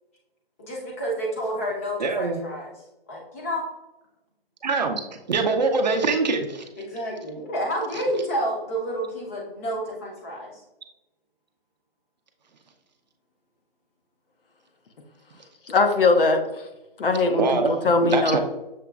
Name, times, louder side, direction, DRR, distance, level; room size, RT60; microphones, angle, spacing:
voice 1, 0.6-2.7 3.1-3.6 6.8-10.5, equal, 15° left, -2 dB, 0.7 m, -29 dB
voice 2, 2.0-2.4 4.6-5.0 5.3-6.7 17.3-17.7 18.0-18.4, right 4 dB, 45° right, 5 dB, 0.6 m, -23 dB
voice 3, 15.7-16.4 17.0-18.4, left 3 dB, 65° left, 5 dB, 0.9 m, -20 dB
6.8 x 2.9 x 2.3 m, 0.97 s
hypercardioid pair, 165°, 30 cm